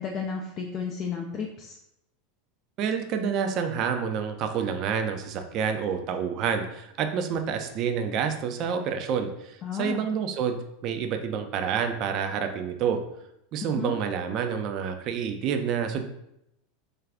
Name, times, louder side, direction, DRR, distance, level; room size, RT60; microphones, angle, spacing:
voice 1, 0.0-1.8 9.6-10.1 13.6-14.0, left 6 dB, 40° left, 1 dB, 0.3 m, -33 dB
voice 2, 2.8-13.0 13.5-16.0, right 7 dB, 45° right, 6 dB, 0.4 m, -28 dB
2.5 x 2.3 x 3.3 m, 0.80 s
hypercardioid pair, 85°, 0 cm